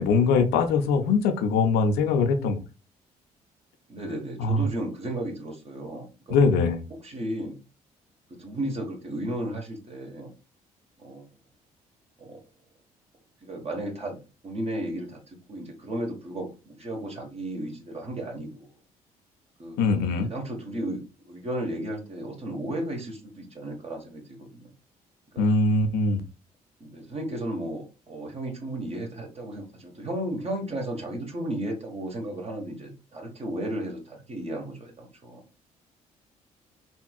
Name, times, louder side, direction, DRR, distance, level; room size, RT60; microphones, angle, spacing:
voice 1, 0.0-2.6 4.4-4.7 6.3-6.8 19.8-20.3 25.4-26.2, left 4 dB, 60° left, 7 dB, 0.7 m, -22 dB
voice 2, 3.9-6.4 7.0-7.6 8.3-10.3 11.0-11.3 12.2-12.4 13.4-18.7 19.6-19.8 20.3-24.7 25.3-25.4 26.8-35.4, right 1 dB, 35° right, 1 dB, 1.4 m, -34 dB
4.4 x 3.3 x 2.3 m, 0.30 s
figure-of-eight pair, 45°, 19 cm